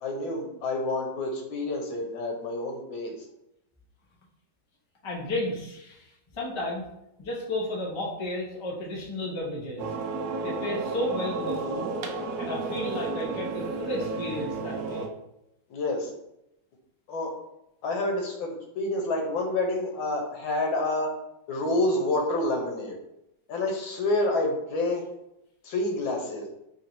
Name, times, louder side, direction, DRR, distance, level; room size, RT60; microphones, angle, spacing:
voice 1, 0.0-3.1 15.7-16.1 17.1-17.3 17.8-21.1 21.5-23.0 23.5-25.0 25.6-26.4, left 2 dB, 80° left, 2 dB, 1.6 m, -28 dB
voice 2, 5.0-6.8 7.2-9.9 10.4-11.9 12.4-15.0, left 1 dB, 30° left, -4 dB, 0.5 m, -33 dB
sound 1, 9.8-15.1, right 4 dB, 75° right, 0.8 m, -32 dB
3.5 x 2.6 x 4.4 m, 0.85 s
omnidirectional pair, 2.1 m